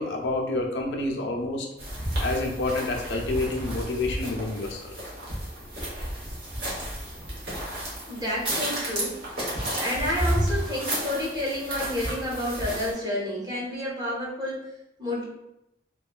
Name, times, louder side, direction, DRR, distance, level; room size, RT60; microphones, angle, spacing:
voice 1, 0.0-1.7 2.2-4.9, left 2 dB, 75° left, 2 dB, 0.4 m, -28 dB
sound 1, 1.8-12.9, right 1 dB, 65° right, 1.0 m, -32 dB
voice 2, 8.1-9.2 9.8-14.6 15.0-15.2, left 1 dB, 25° right, -4 dB, 0.8 m, -30 dB
2.9 x 2.2 x 2.3 m, 0.85 s
head